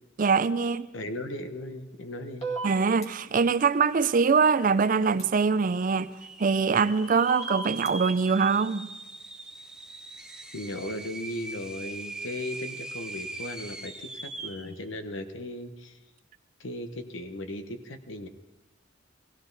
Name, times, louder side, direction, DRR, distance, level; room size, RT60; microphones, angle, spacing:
voice 1, 0.2-0.9 2.6-6.1 6.4-8.9, right 5 dB, 45° right, 0.4 m, -23 dB
voice 2, 0.9-2.5 10.5-16.0 16.6-18.3, left 1 dB, 75° left, 1.1 m, -37 dB
sound 1, 2.4-3.1 5.2-5.3 7.3-7.9, right 3 dB, 35° left, 2.1 m, -33 dB
sound 2, 3.8-3.9 4.1-4.7 5.2-5.3 6.0-14.7, right 2 dB, 5° right, 0.8 m, -41 dB
18.0 x 16.0 x 4.0 m
head